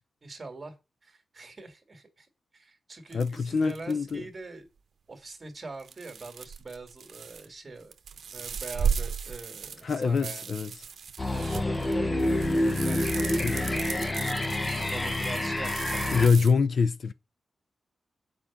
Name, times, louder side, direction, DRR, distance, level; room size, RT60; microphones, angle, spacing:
voice 1, 0.2-0.7 1.0-2.3 2.5-4.7 5.1-7.9 8.3-10.4 11.3-14.1 14.7-16.4, right 3 dB, 30° right, 2.0 m, -44 dB
voice 2, 3.1-4.3 9.8-10.7 13.4-13.6 16.1-17.1, left 5 dB, 60° left, 0.5 m, -24 dB
sound 1, 3.1-4.1 5.8-7.4 7.8-16.5, right 7 dB, 75° right, 0.8 m, -36 dB
sound 2, 11.2-16.3, left 1 dB, 20° left, 0.8 m, -28 dB
7.2 x 5.0 x 7.2 m
wide cardioid pair, 135°, 0 cm